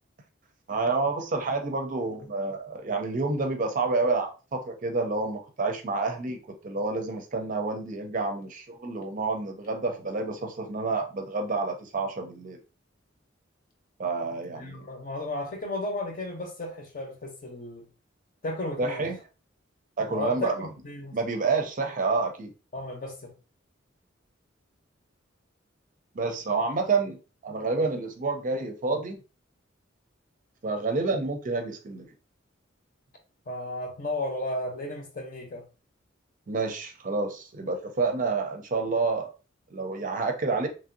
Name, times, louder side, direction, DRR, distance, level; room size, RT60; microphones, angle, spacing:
voice 1, 0.7-12.6 14.0-14.9 18.8-19.2 20.0-20.7 21.1-22.5 26.1-27.2 27.4-29.2 30.6-32.1 36.5-39.3 39.7-40.7, right 3 dB, 45° right, 0.5 m, -29 dB
voice 2, 14.5-17.9 18.4-19.0 20.1-21.2 22.7-23.3 33.5-35.7, left 2 dB, 45° left, 0.8 m, -34 dB
3.1 x 2.6 x 2.6 m
head